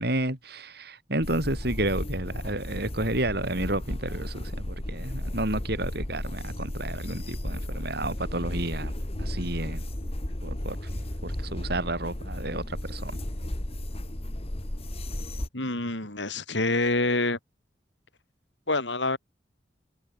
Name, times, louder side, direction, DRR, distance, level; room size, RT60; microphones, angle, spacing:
voice 1, 0.0-8.9 9.2-9.8 10.4-10.9 11.2-13.1, right 1 dB, 60° right, 6.5 m, -31 dB
sound 1, 1.2-15.5, left 1 dB, 35° left, 1.7 m, -34 dB
voice 2, 15.5-17.4 18.7-19.2, left 2 dB, 90° left, 5.9 m, -26 dB
head